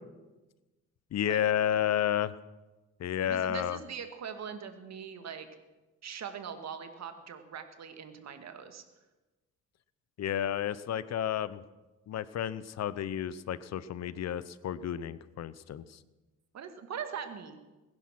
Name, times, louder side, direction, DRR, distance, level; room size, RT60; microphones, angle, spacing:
voice 1, 1.1-2.3 3.0-3.8 10.2-11.6 12.1-15.8, left 10 dB, 60° left, 17 dB, 0.8 m, -31 dB
voice 2, 3.2-5.5 6.0-8.8 16.5-17.6, right 7 dB, 60° right, 8 dB, 2.0 m, -41 dB
21.0 x 11.0 x 6.0 m, 1.1 s
cardioid pair, 90°, 30 cm